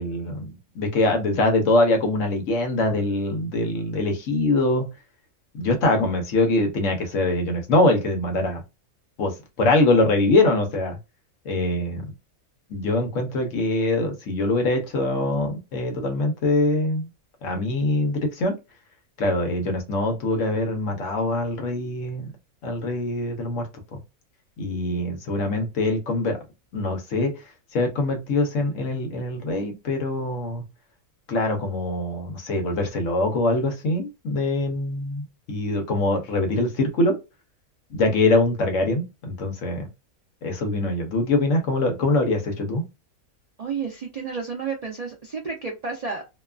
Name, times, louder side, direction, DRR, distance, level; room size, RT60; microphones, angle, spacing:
voice 1, 0.0-4.9 5.5-8.6 9.2-11.0 11.4-12.1 12.7-17.1 17.4-18.5 19.2-22.3 22.6-24.0 24.6-26.4 26.7-27.3 27.7-30.6 31.3-37.2 37.9-39.9 40.4-42.8, left 2 dB, 65° left, 1.0 m, -23 dB
voice 2, 43.6-46.3, right 5 dB, 70° right, 0.3 m, -31 dB
2.8 x 2.3 x 2.3 m
omnidirectional pair, 1.5 m